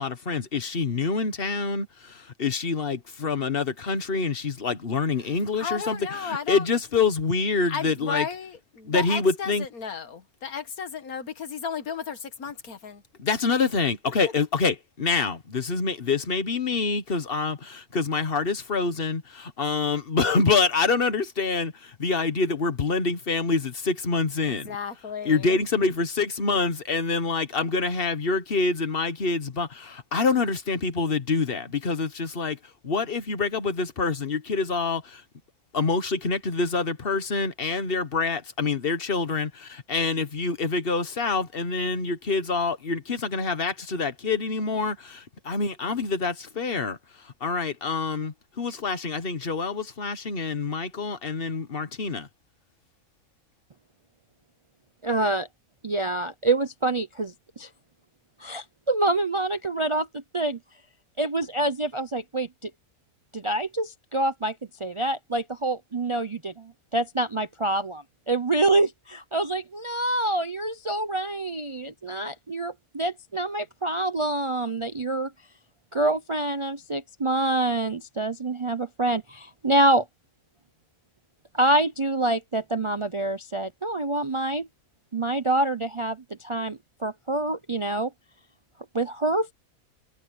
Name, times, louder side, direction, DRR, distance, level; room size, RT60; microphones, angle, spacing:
voice 1, 0.0-8.2 8.9-9.6 13.2-24.7 25.2-32.6 32.8-35.2 35.7-47.0 47.4-52.3, left 4 dB, 40° left, 1.5 m, -26 dB
voice 2, 5.2-6.7 7.7-13.0 14.2-14.3 24.4-25.6, left 6 dB, 80° left, 2.0 m, -34 dB
voice 3, 55.0-55.5 55.8-57.7 58.4-60.6 61.2-62.7 63.3-64.5 64.8-75.3 75.9-80.0 81.5-84.7 85.1-88.1 88.9-89.5, right 2 dB, 35° right, 0.5 m, -26 dB
omnidirectional pair, 1.5 m